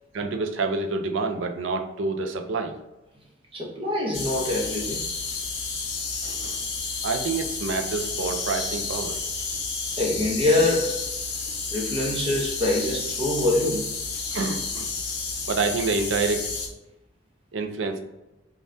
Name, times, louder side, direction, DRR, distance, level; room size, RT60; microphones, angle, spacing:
voice 1, 0.1-2.7 6.2-6.7 7.0-9.2 14.3-14.9 15.5-16.5 17.5-18.0, right 4 dB, 80° right, 5 dB, 0.5 m, -27 dB
voice 2, 3.5-5.0 10.0-11.0 11.7-13.9, left 2 dB, 30° right, -2 dB, 0.8 m, -24 dB
sound 1, 4.1-16.7, left 4 dB, 60° left, 0.8 m, -31 dB
5.3 x 2.4 x 2.7 m, 0.99 s
head